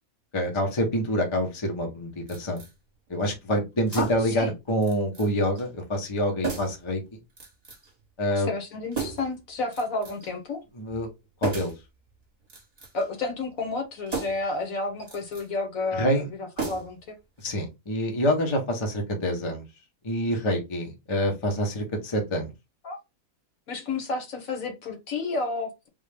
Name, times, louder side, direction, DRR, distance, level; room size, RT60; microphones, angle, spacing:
voice 1, 0.3-2.6 3.1-7.0 8.2-8.5 10.8-11.1 11.4-11.7 16.0-16.2 17.4-19.6 20.0-22.5, equal, 25° left, 0.7 m, -26 dB
sound 1, 2.3-2.7 3.9-4.4 4.8-5.3 5.6-5.7 6.4-6.8 7.4-7.9 8.9-9.4 9.7-10.3 11.4-11.8 12.4-13.1 14.1-14.5 15.0-15.5 16.6-17.1 17.4-17.5, right 4 dB, 30° right, 1.1 m, -34 dB
voice 2, 3.9-4.5 8.3-10.6 12.9-17.2 22.8-23.0 23.7-25.9, left 3 dB, 60° left, 1.4 m, -31 dB
3.6 x 2.4 x 3.4 m
omnidirectional pair, 1.7 m